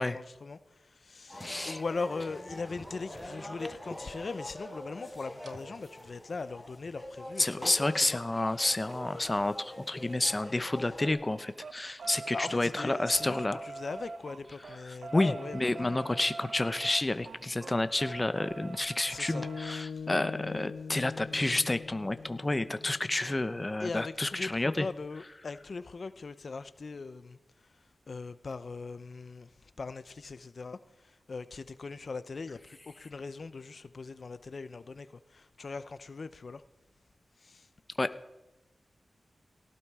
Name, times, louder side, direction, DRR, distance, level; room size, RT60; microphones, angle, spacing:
voice 1, 0.0-8.2 12.3-16.1 19.1-19.5 19.9-20.1 23.8-27.4 28.1-36.6 37.4-37.7, left 4 dB, 60° left, 0.8 m, -40 dB
sound 1, 1.3-11.1, left 1 dB, ahead, 7.0 m, -44 dB
voice 2, 1.4-1.8 7.4-13.6 14.8-24.9 38.0-38.1, left 2 dB, 25° left, 0.8 m, -30 dB
sound 2, 5.4-5.5 7.2-10.7 11.0-19.7 21.4-21.5 21.8-21.9 22.2-22.3, right 3 dB, 70° right, 0.9 m, -45 dB
sound 3, 19.3-23.7, left 5 dB, 90° left, 0.8 m, -42 dB
17.5 x 16.0 x 4.9 m
cardioid pair, 70°, 0 cm